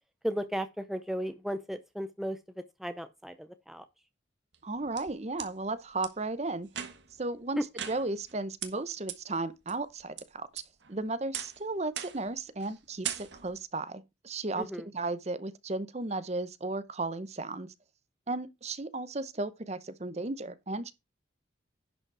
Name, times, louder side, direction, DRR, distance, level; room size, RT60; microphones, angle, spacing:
voice 1, 0.2-3.8 7.6-7.7 14.6-14.9, equal, ahead, 0.6 m, -35 dB
sound 1, 4.5-5.5 6.0-6.1 6.7-7.2 7.8-8.3 8.6-8.7 9.1-9.2 9.7-10.2 10.6-10.9 11.3-11.6 12.0-12.3 12.6-12.8 13.0-13.6, right 9 dB, 65° right, 1.4 m, -39 dB
voice 2, 4.6-6.7 7.2-7.6 7.9-10.6 10.9-14.7 14.9-17.7 18.3-20.9, right 2 dB, 35° right, 0.7 m, -35 dB
11.0 x 5.3 x 4.7 m
head